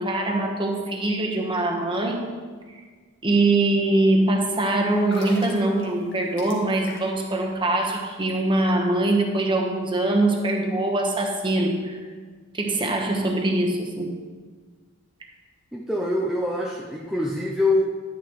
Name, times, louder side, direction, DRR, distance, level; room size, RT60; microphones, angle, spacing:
voice 1, 0.0-2.3 3.2-12.0 12.5-14.1, right 2 dB, 20° right, 1 dB, 1.1 m, -23 dB
sound 1, 4.9-7.3 7.6-7.8, left 2 dB, 55° left, 1.7 m, -39 dB
voice 2, 15.7-17.8, left 1 dB, ahead, -3 dB, 0.5 m, -24 dB
10.0 x 10.0 x 3.1 m, 1.5 s
head